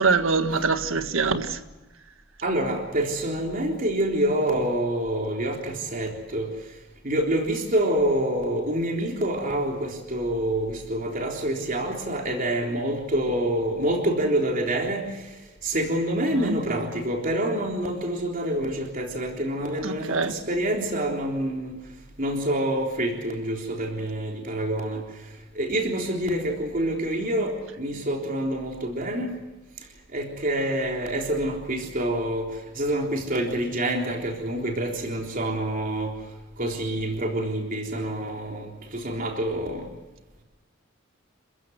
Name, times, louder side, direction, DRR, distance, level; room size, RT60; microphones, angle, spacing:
voice 1, 0.0-1.6 16.4-16.6 19.8-20.3, right 4 dB, 85° right, 1.7 m, -24 dB
voice 2, 2.4-6.5 7.0-21.8 22.2-25.2 25.5-29.4 30.1-36.1 36.6-39.9, right 1 dB, 45° right, 3.6 m, -27 dB
28.5 x 15.5 x 7.9 m
head